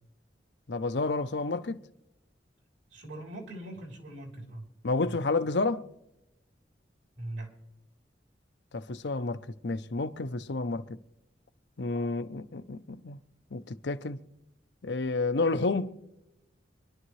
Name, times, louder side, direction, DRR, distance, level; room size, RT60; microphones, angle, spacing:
voice 1, 0.7-1.8 4.8-5.9 8.7-10.8 11.8-13.2 13.5-14.2 14.8-16.0, left 3 dB, 75° left, 0.7 m, -30 dB
voice 2, 2.9-4.6 5.0-5.2 7.1-7.5, right 1 dB, 85° right, 3.4 m, -41 dB
25.5 x 11.0 x 3.2 m
head